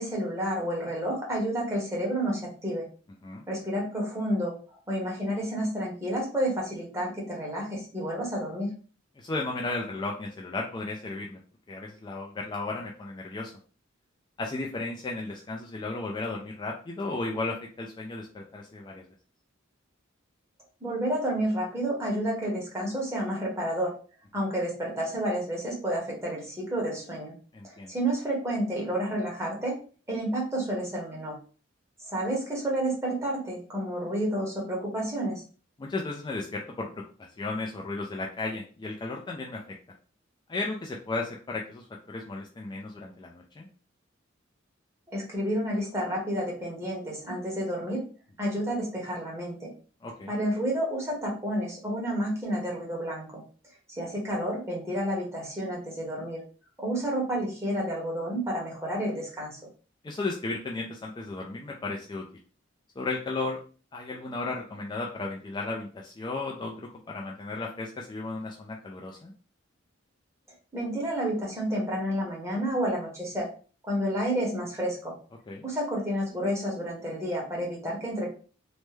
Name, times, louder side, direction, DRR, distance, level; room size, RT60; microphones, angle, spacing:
voice 1, 0.0-2.9 3.5-4.5 4.9-8.7 20.8-23.9 24.3-27.3 27.6-29.8 30.1-31.4 32.0-35.4 45.1-48.0 48.4-49.7 50.3-53.4 53.9-56.4 56.8-59.6 70.7-73.5 73.8-75.1 75.6-78.3, right 1 dB, 15° right, -3 dB, 1.1 m, -30 dB
voice 2, 9.2-11.4 11.7-13.5 14.4-19.0 27.5-27.9 35.8-39.6 40.5-43.7 50.0-50.3 60.0-62.2 63.0-63.6 63.9-69.3 75.5-75.6, left 3 dB, 20° left, -1 dB, 0.3 m, -34 dB
3.3 x 2.1 x 3.1 m, 0.39 s
head